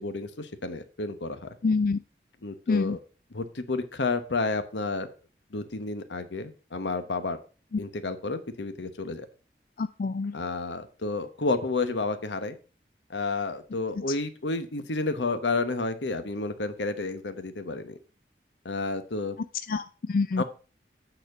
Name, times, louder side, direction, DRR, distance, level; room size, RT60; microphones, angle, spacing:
voice 1, 0.0-1.5 2.4-3.0 3.3-5.1 5.5-7.4 7.8-9.3 10.3-12.6 13.1-18.0 18.6-19.4 20.4-20.5, left 3 dB, 90° left, 10 dB, 1.1 m, -31 dB
voice 2, 1.6-2.0 2.7-3.0 9.8-10.3 19.7-20.4, left 4 dB, 50° left, 12 dB, 0.3 m, -26 dB
9.2 x 4.3 x 6.6 m, 0.36 s
head